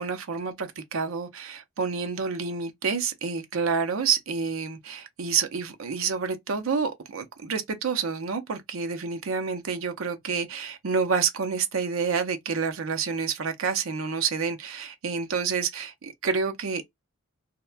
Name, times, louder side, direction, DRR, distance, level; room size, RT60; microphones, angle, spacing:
voice 1, 0.0-16.8, right 5 dB, 70° right, 0.6 m, -28 dB
2.8 x 2.1 x 2.2 m
head